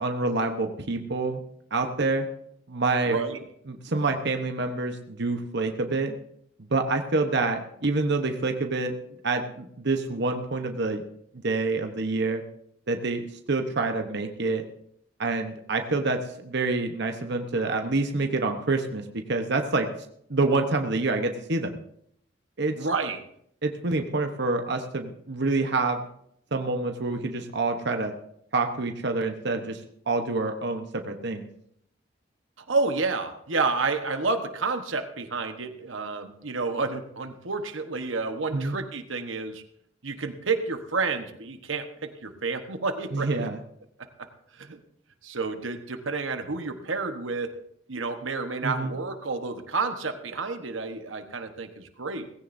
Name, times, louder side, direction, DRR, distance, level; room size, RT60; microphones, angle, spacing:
voice 1, 0.0-1.4 1.7-2.3 2.7-3.2 3.7-6.1 6.7-8.9 9.2-11.0 11.4-12.4 12.9-13.2 13.5-14.6 15.2-19.0 19.3-19.9 20.3-21.7 22.6-22.7 23.6-26.0 26.5-28.1 28.5-29.8 30.1-31.4 38.5-38.8 43.1-43.6 48.6-48.9, right 3 dB, 60° right, 5 dB, 1.1 m, -27 dB
voice 2, 3.0-3.4 22.8-23.2 32.6-39.6 40.0-43.5 44.5-44.8 45.2-47.5 47.9-52.3, right 4 dB, 90° right, 7 dB, 1.3 m, -30 dB
17.5 x 16.0 x 2.7 m, 0.70 s
head